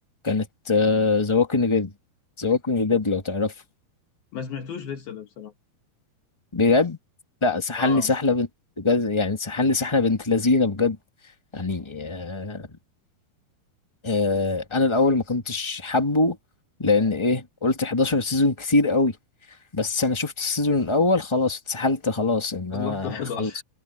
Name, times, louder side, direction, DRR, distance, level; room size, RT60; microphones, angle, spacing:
voice 1, 0.2-1.9 2.4-3.5 6.5-7.0 7.4-8.5 8.8-11.0 11.5-12.7 14.0-16.4 16.8-19.1 19.7-23.6, left 3 dB, 45° left, 0.3 m, -23 dB
voice 2, 4.3-5.5 7.8-8.1 22.7-23.6, left 7 dB, 70° left, 4.0 m, -33 dB
omnidirectional pair, 4.5 m